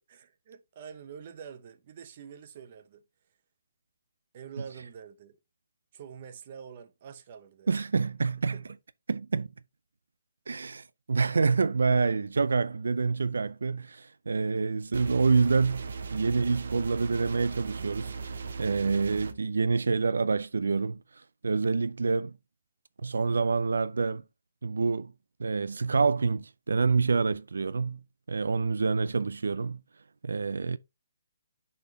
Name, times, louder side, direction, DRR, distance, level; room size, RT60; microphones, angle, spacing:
voice 1, 0.1-3.0 4.3-5.4 5.9-7.7 8.5-8.6, right 7 dB, 30° right, 0.7 m, -46 dB
voice 2, 7.7-8.6 9.1-9.5 10.5-18.1 18.6-21.0 21.4-22.4 23.0-24.2 24.6-25.1 25.4-28.0 28.3-29.8 30.2-30.8, right 4 dB, 85° right, 0.4 m, -27 dB
sound 1, 14.9-19.3, right 5 dB, 55° right, 0.9 m, -38 dB
10.0 x 4.3 x 2.8 m
hypercardioid pair, 175°, 0 cm